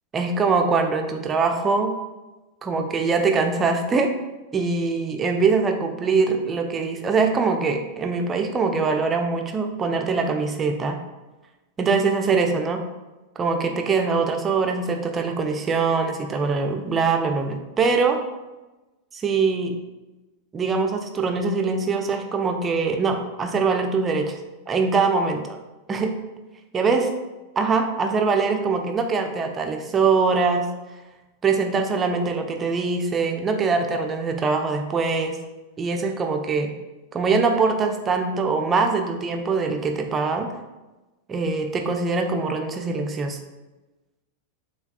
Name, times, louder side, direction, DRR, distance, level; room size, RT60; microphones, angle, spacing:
voice 1, 0.1-2.0 2.6-4.1 4.5-11.0 11.8-12.8 13.4-18.2 19.1-19.8 20.5-24.4 24.7-25.6 25.9-26.2 26.7-27.1 27.6-30.7 31.4-35.4 35.8-36.7 37.1-40.5 41.3-43.4, right 4 dB, 20° right, 4 dB, 0.5 m, -23 dB
6.8 x 2.3 x 2.3 m, 1.1 s
figure-of-eight pair, 90°, 0 cm